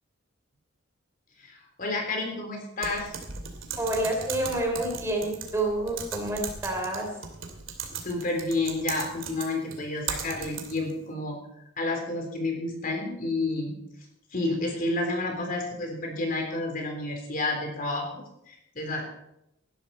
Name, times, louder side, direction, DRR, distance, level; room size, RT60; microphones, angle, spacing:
voice 1, 1.4-3.1 8.0-11.4 11.8-13.7 14.3-19.1, left 2 dB, 45° left, 2 dB, 3.6 m, -30 dB
Typing, 2.8-10.9, right 6 dB, 75° right, 2.6 m, -38 dB
voice 2, 3.8-7.1, right 1 dB, 15° right, 1 dB, 3.5 m, -28 dB
18.5 x 12.0 x 4.3 m, 0.81 s
head